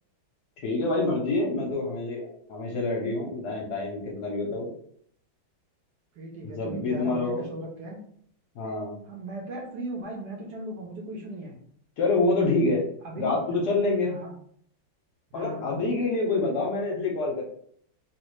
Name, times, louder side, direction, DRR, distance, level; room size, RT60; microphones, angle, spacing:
voice 1, 0.6-4.7 6.4-7.4 8.5-9.0 12.0-12.8 13.2-14.2 15.3-17.4, left 3 dB, 65° left, -2 dB, 1.1 m, -27 dB
voice 2, 6.2-8.0 9.1-11.6 13.0-13.4 14.1-14.3 15.4-15.7, right 1 dB, 70° right, -1 dB, 1.1 m, -37 dB
3.1 x 2.5 x 3.1 m, 0.63 s
omnidirectional pair, 2.1 m